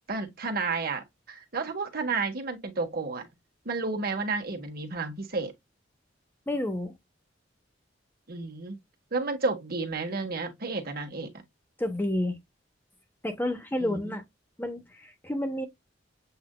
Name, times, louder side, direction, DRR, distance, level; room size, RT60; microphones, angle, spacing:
voice 1, 0.1-3.3 3.6-5.5 8.3-8.8 9.1-11.3 13.8-14.1, right 3 dB, 50° right, 1.3 m, -31 dB
voice 2, 6.5-7.0 11.8-12.4 13.2-14.2 14.6-15.7, left 1 dB, 10° left, 0.9 m, -30 dB
7.7 x 2.6 x 2.2 m
head